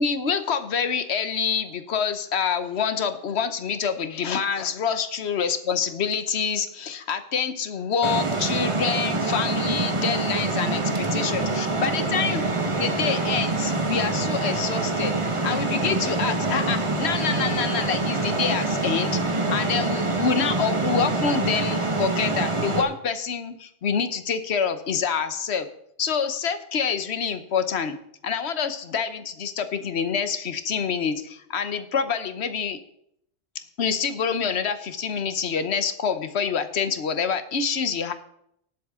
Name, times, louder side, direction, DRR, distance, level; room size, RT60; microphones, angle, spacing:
voice 1, 0.0-12.5 12.8-19.2 19.5-25.7 26.0-28.0 28.2-32.8 33.8-38.1, left 6 dB, 70° left, 10 dB, 1.2 m, -26 dB
sound 1, 8.0-22.8, right 2 dB, 30° right, 1.3 m, -25 dB
18.5 x 7.7 x 3.7 m, 0.73 s
omnidirectional pair, 1.1 m